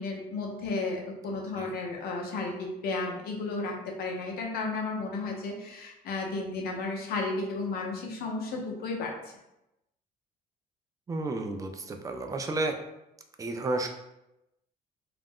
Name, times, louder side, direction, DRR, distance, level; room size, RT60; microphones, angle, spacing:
voice 1, 0.0-9.1, left 3 dB, 65° left, 0 dB, 0.7 m, -33 dB
voice 2, 11.1-12.8 13.4-13.9, right 2 dB, 20° right, 5 dB, 0.3 m, -32 dB
2.4 x 2.1 x 3.5 m, 0.91 s
cardioid pair, 110°, 17 cm